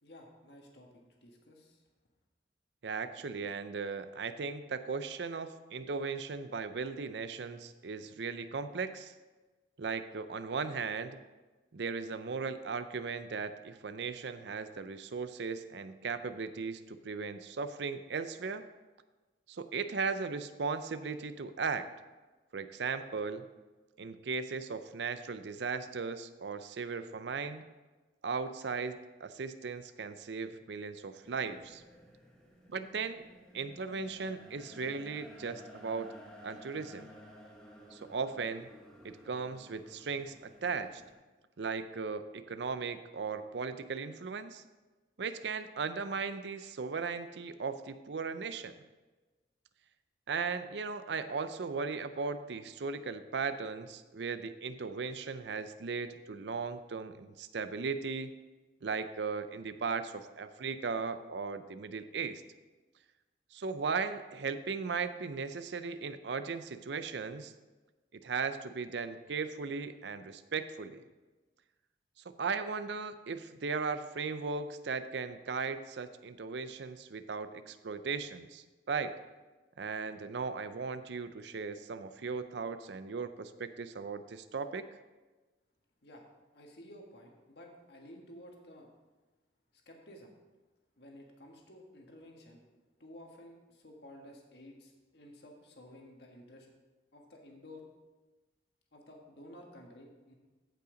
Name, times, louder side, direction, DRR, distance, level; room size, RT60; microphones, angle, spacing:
voice 1, 0.0-1.8 86.0-86.2 86.5-88.9 89.8-90.3 91.0-92.6 93.0-96.7 97.1-97.8 98.9-100.3, left 1 dB, 60° left, 1 dB, 1.6 m, -53 dB
voice 2, 2.8-9.1 9.8-11.2 11.7-18.6 19.5-21.9 22.5-23.5 24.0-27.6 28.2-31.8 32.7-33.2 33.5-36.1 36.4-37.1 37.9-38.7 39.0-41.0 41.6-44.6 45.2-48.8 50.3-58.3 58.8-62.4 63.5-67.5 68.2-71.0 72.4-79.1 79.8-84.8, right 5 dB, 70° right, 11 dB, 0.5 m, -37 dB
sound 1, 31.2-41.1, equal, 5° left, 1.2 m, -54 dB
15.0 x 5.7 x 3.9 m, 1.2 s
head